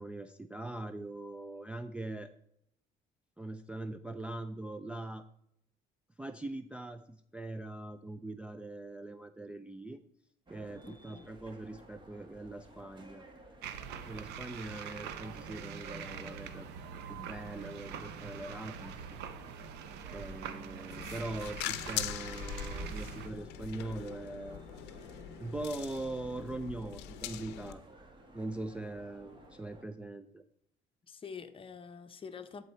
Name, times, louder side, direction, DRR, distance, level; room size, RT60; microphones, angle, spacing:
voice 1, 0.0-2.3 3.4-5.2 6.2-10.0 10.5-13.2 14.1-16.7 17.1-19.1 20.1-24.6 25.4-27.8 28.3-30.4, right 2 dB, 5° right, 6 dB, 0.3 m, -42 dB
sound 1, 10.5-29.8, right 1 dB, 30° right, 1.5 m, -56 dB
voice 2, 10.8-11.3 31.1-32.6, left 6 dB, 30° left, 9 dB, 0.8 m, -46 dB
sound 2, 13.6-23.3, right 7 dB, 85° right, 0.7 m, -44 dB
sound 3, 20.9-27.7, left 11 dB, 90° left, 0.6 m, -42 dB
11.5 x 4.0 x 4.4 m, 0.78 s
cardioid pair, 110°, 17 cm